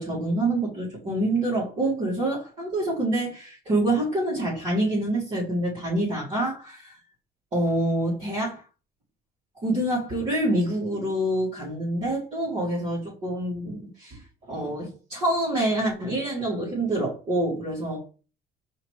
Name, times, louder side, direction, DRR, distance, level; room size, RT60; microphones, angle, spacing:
voice 1, 0.0-7.0 7.5-8.6 9.6-18.0, right 1 dB, 40° right, 2.0 m, -26 dB
5.0 x 3.0 x 3.2 m
cardioid pair, 110°, 17 cm